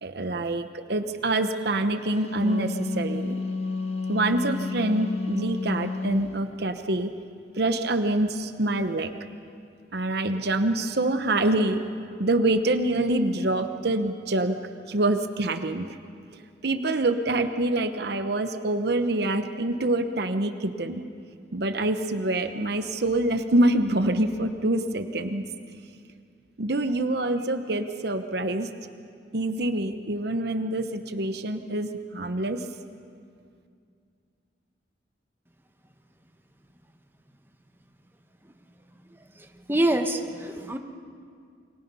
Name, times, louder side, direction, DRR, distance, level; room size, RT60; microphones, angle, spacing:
voice 1, 0.0-3.4 4.1-7.1 7.6-9.1 9.9-11.8 12.2-14.6 14.9-16.0 16.3-21.0 21.5-25.4 26.6-28.7 29.3-32.6, right 1 dB, 60° right, 8 dB, 1.0 m, -26 dB
Wind instrument woodwind instrument, 2.1-6.3, left 4 dB, 35° left, 1.3 m, -31 dB
voice 2, 39.7-40.8, right 1 dB, 10° right, 4 dB, 1.2 m, -25 dB
29.0 x 24.0 x 5.5 m, 2.3 s
head